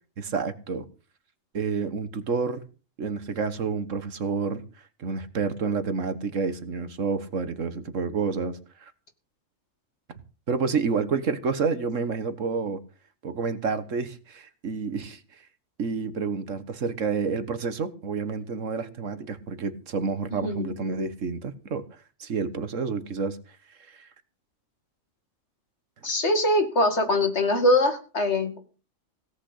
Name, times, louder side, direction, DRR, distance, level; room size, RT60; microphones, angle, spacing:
voice 1, 0.2-0.9 1.5-2.6 3.0-4.6 5.0-8.9 10.1-10.2 10.5-12.8 13.2-15.2 15.8-21.8 22.2-23.4 23.8-24.1, right 5 dB, 70° right, 1.6 m, -29 dB
voice 2, 20.4-20.7 26.0-28.6, left 1 dB, 55° left, 2.6 m, -23 dB
17.0 x 6.3 x 8.3 m
omnidirectional pair, 1.4 m